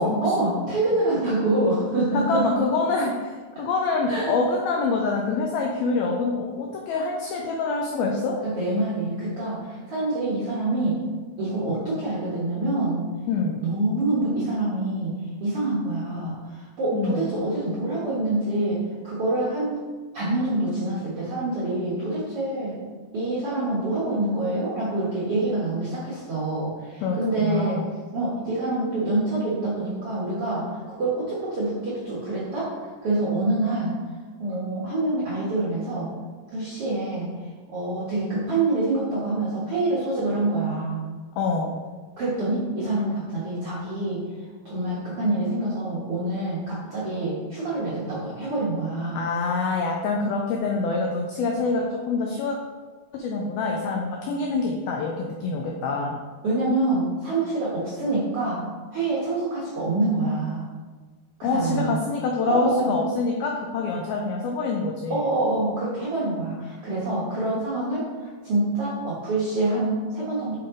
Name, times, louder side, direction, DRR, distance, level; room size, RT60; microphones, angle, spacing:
voice 1, 0.0-2.5 4.1-4.3 8.4-11.0 11.4-13.1 13.6-15.1 15.4-19.7 20.1-22.8 23.1-27.8 28.1-32.7 33.0-33.9 34.4-36.1 36.5-37.3 37.7-41.0 42.2-44.2 44.6-49.3 56.4-58.6 58.9-60.6 61.4-62.0 62.5-63.0 65.1-70.6, right 2 dB, 70° right, -8 dB, 1.3 m, -26 dB
voice 2, 2.1-8.4 13.3-13.6 16.9-17.3 27.0-27.9 41.4-41.8 49.2-52.6 53.1-56.2 61.4-65.2, left 3 dB, 90° left, 0 dB, 2.1 m, -26 dB
7.5 x 6.0 x 3.8 m, 1.4 s
omnidirectional pair, 5.1 m